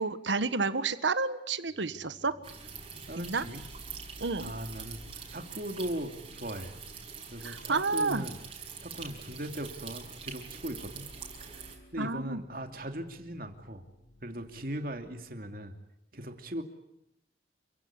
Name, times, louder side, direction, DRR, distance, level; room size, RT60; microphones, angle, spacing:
voice 1, 0.0-2.3 3.2-3.4 4.2-4.5 7.4-8.3 12.0-12.4, right 4 dB, 85° right, 12 dB, 1.5 m, -30 dB
sound 1, 1.7-15.3, equal, 35° left, 3.6 m, -55 dB
sound 2, 2.4-11.7, right 6 dB, 30° right, 6.1 m, -45 dB
voice 2, 2.8-3.6 4.4-6.8 7.3-8.4 8.8-11.1 11.4-11.5 11.9-13.8 14.2-15.7 16.1-16.6, right 1 dB, 50° right, 6 dB, 2.8 m, -39 dB
29.0 x 16.5 x 9.8 m, 0.85 s
head